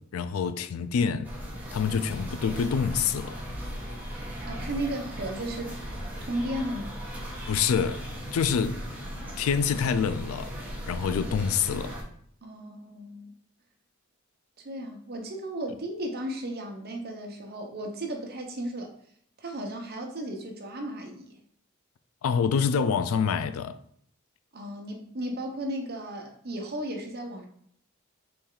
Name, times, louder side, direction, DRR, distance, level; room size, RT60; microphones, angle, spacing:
voice 1, 0.0-1.3 1.7-3.4 7.5-8.1 8.3-8.8 9.4-10.5 10.9-11.9 22.2-23.8, left 6 dB, 80° left, 0.3 m, -26 dB
sound 1, 1.2-12.0, equal, 10° right, 1.1 m, -37 dB
voice 2, 4.5-5.7 6.3-7.0 12.4-13.3 14.6-18.9 19.4-21.4 24.5-27.4, right 1 dB, 50° right, 0.9 m, -35 dB
4.3 x 3.2 x 3.8 m
head